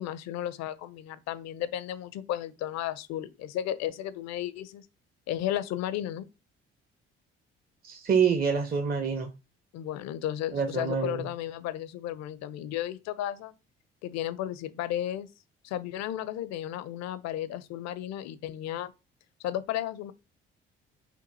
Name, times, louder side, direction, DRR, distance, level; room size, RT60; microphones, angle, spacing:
voice 1, 0.0-4.9 5.3-6.3 9.7-13.5 14.0-15.3 15.6-18.9 19.4-20.1, left 12 dB, 65° left, 0.5 m, -34 dB
voice 2, 7.8-9.3 10.5-11.3, right 6 dB, 30° right, 0.6 m, -26 dB
5.2 x 2.6 x 2.6 m
hypercardioid pair, 50°, 29 cm